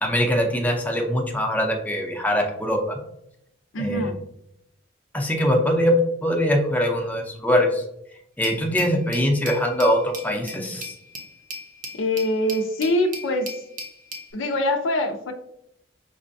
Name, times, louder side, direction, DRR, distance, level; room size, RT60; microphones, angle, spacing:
voice 1, 0.0-3.0 3.8-4.0 5.1-7.8 8.4-10.9, equal, 10° left, 1 dB, 0.5 m, -22 dB
voice 2, 3.7-4.1 11.9-13.5 14.3-15.3, left 1 dB, 85° left, 5 dB, 0.6 m, -24 dB
Glass, 8.4-14.3, left 1 dB, 45° right, 0.6 m, -38 dB
6.0 x 2.2 x 2.6 m, 0.77 s
head